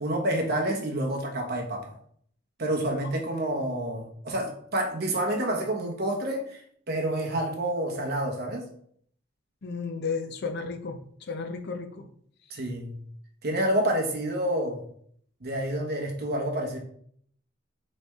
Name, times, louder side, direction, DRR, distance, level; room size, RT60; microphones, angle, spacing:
voice 1, 0.0-1.9 2.6-8.7 12.5-12.9 13.4-14.8 15.4-16.8, right 1 dB, 50° right, 1 dB, 0.9 m, -28 dB
voice 2, 9.6-11.0 11.3-12.1, left 4 dB, 55° left, 6 dB, 0.5 m, -33 dB
4.2 x 3.2 x 3.4 m, 0.63 s
head